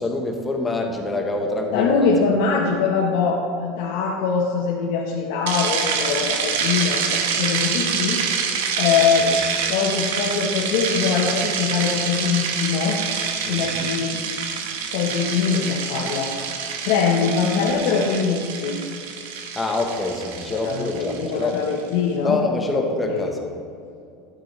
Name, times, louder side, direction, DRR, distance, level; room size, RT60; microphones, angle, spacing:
voice 1, 0.0-1.9 9.2-9.4 13.4-13.9 19.5-21.5 22.2-23.4, left 2 dB, 10° left, 2 dB, 1.1 m, -25 dB
voice 2, 1.7-9.3 9.7-13.0 13.4-14.2 14.9-18.8 20.5-22.4 22.8-23.3, left 5 dB, 70° left, -2 dB, 1.2 m, -23 dB
sound 1, 5.5-21.7, right 6 dB, 90° right, 1.1 m, -26 dB
12.0 x 8.9 x 3.3 m, 2.5 s
supercardioid pair, 150°, 0 cm